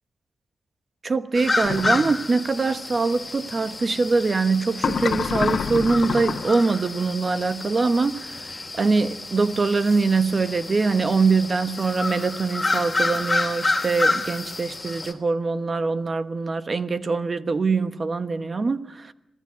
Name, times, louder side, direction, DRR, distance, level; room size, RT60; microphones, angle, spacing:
voice 1, 1.0-19.1, right 4 dB, 35° right, 1.2 m, -23 dB
sound 1, 1.3-15.1, left 3 dB, 20° left, 2.9 m, -29 dB
sound 2, 1.6-2.1 4.8-6.6, left 6 dB, 65° left, 1.5 m, -27 dB
26.5 x 17.0 x 9.5 m
wide cardioid pair, 135°, 0 cm